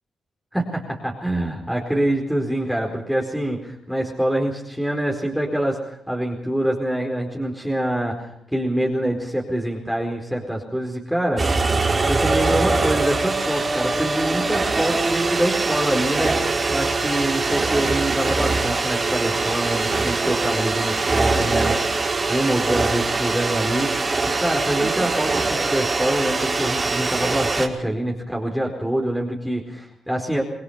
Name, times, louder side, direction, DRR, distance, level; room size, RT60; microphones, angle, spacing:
voice 1, 0.5-11.4 12.1-23.9 24.4-30.4, right 1 dB, ahead, -1 dB, 4.7 m, -25 dB
sound 1, 11.4-27.7, right 3 dB, 30° right, 4.5 m, -22 dB
26.0 x 19.5 x 5.8 m, 0.78 s
cardioid pair, 70°, 0 cm